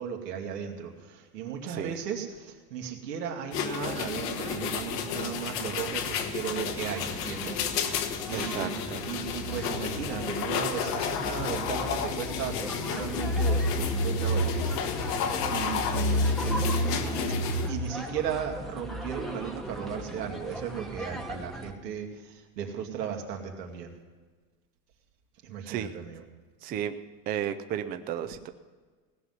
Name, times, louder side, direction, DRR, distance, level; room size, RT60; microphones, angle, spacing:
voice 1, 0.0-6.0 6.3-8.0 8.3-8.7 9.1-14.7 15.5-17.3 17.7-23.9 25.4-26.2, right 8 dB, 90° right, 1 dB, 2.4 m, -36 dB
voice 2, 1.6-2.0 8.3-9.1 25.7-26.0 26.6-27.0 27.3-28.5, right 9 dB, 20° right, 9 dB, 0.4 m, -33 dB
sound 1, 3.5-17.7, left 4 dB, 75° left, 1.5 m, -30 dB
sound 2, 3.8-21.7, equal, ahead, 0.9 m, -40 dB
17.5 x 5.8 x 9.5 m, 1.4 s
supercardioid pair, 130°, 47 cm